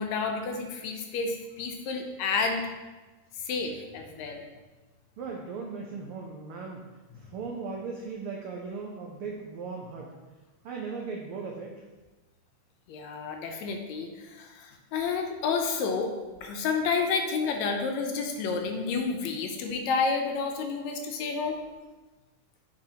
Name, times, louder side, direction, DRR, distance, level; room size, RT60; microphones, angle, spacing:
voice 1, 0.0-2.7 3.4-4.4 12.9-16.1 16.4-21.6, left 5 dB, 80° left, 4 dB, 1.9 m, -30 dB
voice 2, 5.2-6.8 7.1-10.2 10.6-11.7, right 4 dB, 85° right, -1 dB, 1.2 m, -37 dB
9.0 x 4.6 x 2.9 m, 1.2 s
omnidirectional pair, 3.3 m